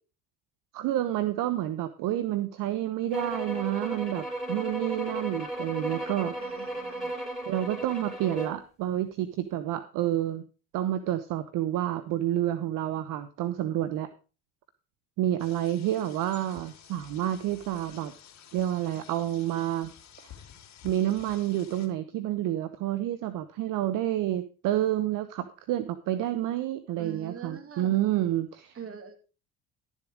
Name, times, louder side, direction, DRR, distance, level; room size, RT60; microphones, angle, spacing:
voice 1, 0.7-6.3 7.5-10.4 10.7-14.1 15.2-18.1 18.5-19.9 20.8-28.8, right 13 dB, 60° right, 12 dB, 0.9 m, -29 dB
sound 1, 3.1-8.6, right 1 dB, ahead, 4.1 m, -35 dB
voice 2, 6.3-7.1 27.0-28.0 28.7-29.2, right 7 dB, 35° right, 7 dB, 2.7 m, -43 dB
sound 2, 15.4-21.9, left 9 dB, 45° left, 2.8 m, -51 dB
12.0 x 7.3 x 4.9 m, 0.34 s
hypercardioid pair, 75°, 38 cm